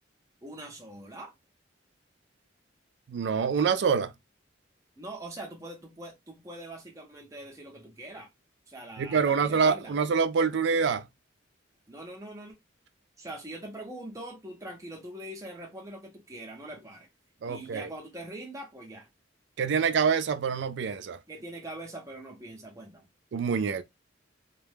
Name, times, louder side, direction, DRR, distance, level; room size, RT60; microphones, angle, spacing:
voice 1, 0.4-1.3 5.0-8.3 8.7-9.9 11.9-12.6 13.2-17.1 17.5-19.1 21.3-23.1, right 1 dB, 15° right, 0.6 m, -43 dB
voice 2, 3.1-4.1 9.0-11.1 17.4-17.9 19.6-21.2 23.3-23.8, right 6 dB, 65° right, 0.3 m, -26 dB
2.2 x 2.0 x 3.2 m
head